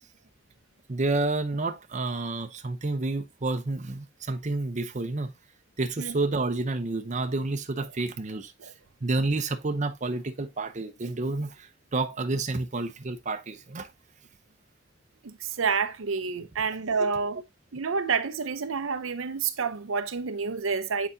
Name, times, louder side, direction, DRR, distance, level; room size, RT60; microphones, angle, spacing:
voice 1, 0.9-5.3 5.8-8.5 9.0-13.9, right 2 dB, 40° right, 0.7 m, -29 dB
voice 2, 6.0-6.3 8.6-8.7 15.2-17.4 17.7-21.1, right 5 dB, 80° right, 0.7 m, -29 dB
7.6 x 4.9 x 2.7 m
head